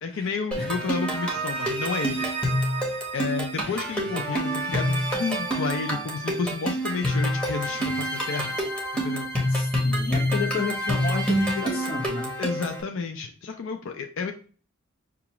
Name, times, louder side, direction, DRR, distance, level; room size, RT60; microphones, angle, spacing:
voice 1, 0.0-2.3 3.1-8.5 9.0-9.3 12.4-14.3, left 5 dB, 60° left, 4 dB, 0.4 m, -31 dB
sound 1, 0.5-12.8, equal, 5° left, 1.0 m, -27 dB
voice 2, 9.5-12.3, left 4 dB, 45° left, 1 dB, 1.2 m, -31 dB
5.8 x 2.4 x 2.9 m, 0.40 s
head